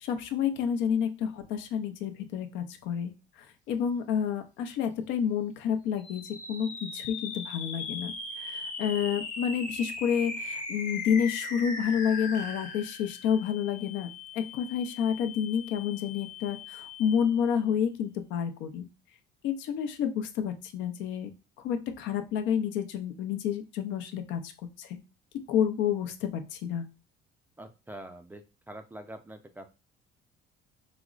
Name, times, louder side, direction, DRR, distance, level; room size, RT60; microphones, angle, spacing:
voice 1, 0.0-3.1 3.7-6.2 6.5-8.5 8.8-14.1 14.4-18.8 19.4-21.3 21.6-24.4 24.8-25.0 25.5-26.8, left 8 dB, 75° left, 7 dB, 0.6 m, -29 dB
sound 1, 6.0-17.5, left 4 dB, 45° left, 0.9 m, -39 dB
voice 2, 27.6-29.8, right 1 dB, 10° right, 6 dB, 0.3 m, -45 dB
4.9 x 2.0 x 2.4 m, 0.29 s
cardioid pair, 130°, 19 cm